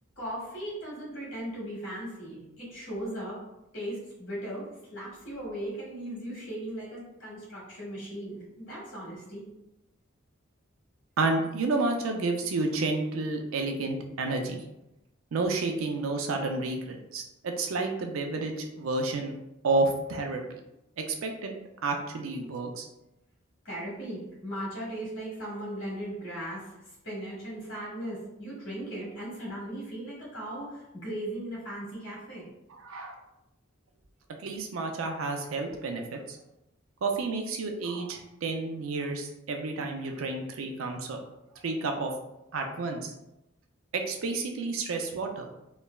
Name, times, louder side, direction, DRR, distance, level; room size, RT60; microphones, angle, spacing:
voice 1, 0.2-3.4 3.7-4.6 4.9-9.4 23.6-26.6 27.0-32.5, right 1 dB, 70° left, -6 dB, 1.4 m, -37 dB
voice 2, 11.2-14.6 15.3-19.3 19.6-20.4 21.0-21.5 21.8-22.9 32.7-33.2 34.4-36.4 37.0-41.2 41.6-42.1 42.5-43.1 43.9-45.5, right 3 dB, 85° right, 3 dB, 0.4 m, -30 dB
3.1 x 2.1 x 2.2 m, 0.89 s
head